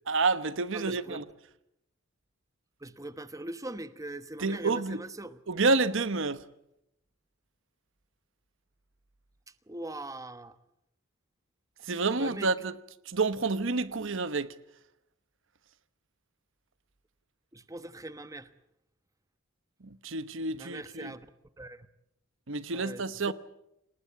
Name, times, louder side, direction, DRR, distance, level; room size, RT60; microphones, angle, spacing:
voice 1, 0.1-1.2 4.4-5.0 5.5-6.4 11.8-12.7 13.0-14.5 19.8-21.1 22.5-23.3, right 3 dB, 65° right, 1.1 m, -29 dB
voice 2, 0.7-1.2 2.8-5.4 9.7-10.6 12.2-12.5 17.5-18.5 20.5-21.3 21.6-21.9 22.7-23.3, right 1 dB, 15° right, 1.1 m, -41 dB
28.5 x 19.5 x 8.6 m
head